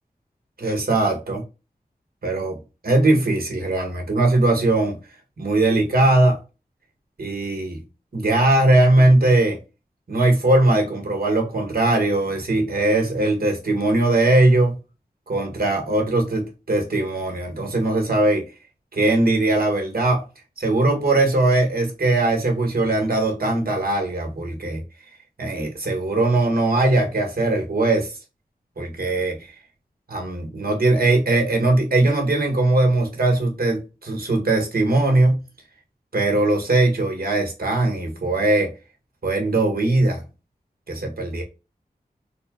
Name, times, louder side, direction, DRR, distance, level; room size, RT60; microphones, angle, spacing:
voice 1, 0.6-1.4 2.2-2.6 2.8-5.0 5.4-6.4 7.2-7.8 8.1-9.6 10.1-14.8 15.3-18.5 18.9-20.3 20.6-24.8 25.4-28.2 28.8-29.5 30.1-35.5 36.1-38.7 39.2-40.2 40.9-41.4, right 2 dB, 70° right, 1.5 m, -20 dB
3.9 x 2.3 x 3.6 m
wide cardioid pair, 55°, 16 cm